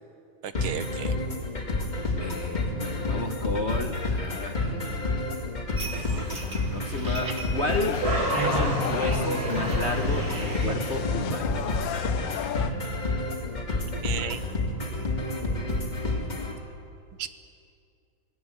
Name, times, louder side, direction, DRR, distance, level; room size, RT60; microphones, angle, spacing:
voice 1, 0.4-1.2 14.0-14.5 17.2-17.3, right 9 dB, 75° right, 12 dB, 1.7 m, -34 dB
sound 1, 0.5-16.5, left 2 dB, 20° left, 2.6 m, -29 dB
voice 2, 2.2-5.4 6.0-6.1 6.7-11.7, left 3 dB, 40° left, 6 dB, 1.1 m, -32 dB
sound 2, 5.8-10.8, right 2 dB, 45° right, 2.5 m, -31 dB
sound 3, 7.6-12.7, left 10 dB, 70° left, 1.4 m, -35 dB
27.5 x 18.5 x 8.1 m, 2.5 s
omnidirectional pair, 2.3 m